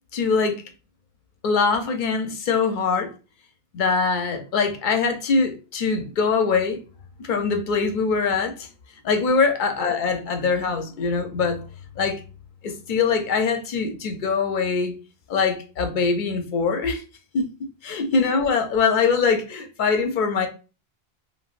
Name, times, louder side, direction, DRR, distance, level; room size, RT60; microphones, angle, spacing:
voice 1, 0.1-0.6 1.4-3.1 3.7-6.8 7.2-8.7 9.0-11.6 12.0-12.2 12.6-15.0 15.3-17.0 17.3-17.5 17.8-20.5, left 5 dB, 55° left, 0.7 m, -23 dB
3.3 x 2.3 x 2.4 m
omnidirectional pair, 1.1 m